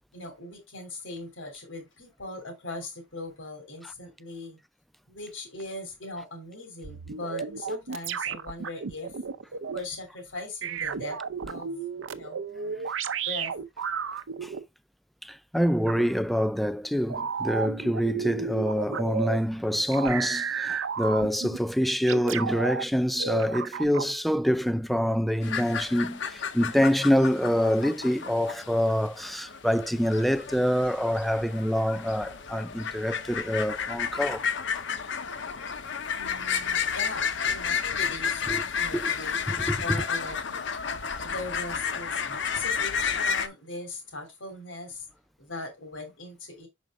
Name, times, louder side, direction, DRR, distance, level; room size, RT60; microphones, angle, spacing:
voice 1, 0.1-4.6 5.1-9.1 9.7-11.7 12.1-12.8 13.2-13.5 36.1-40.9 41.2-45.1 45.4-46.7, left 2 dB, 90° left, 2.9 m, -40 dB
sound 1, 6.8-9.8 10.6-14.6 15.9-16.0 17.1-19.4 19.9-21.6 22.1-22.8 23.2-24.1, right 6 dB, 90° right, 0.6 m, -32 dB
voice 2, 15.2-34.5 34.7-34.8 38.5-38.6 38.9-39.1 39.5-40.0, equal, ahead, 0.3 m, -26 dB
sound 2, 25.4-43.5, left 6 dB, 70° left, 0.8 m, -31 dB
6.1 x 5.2 x 3.6 m
head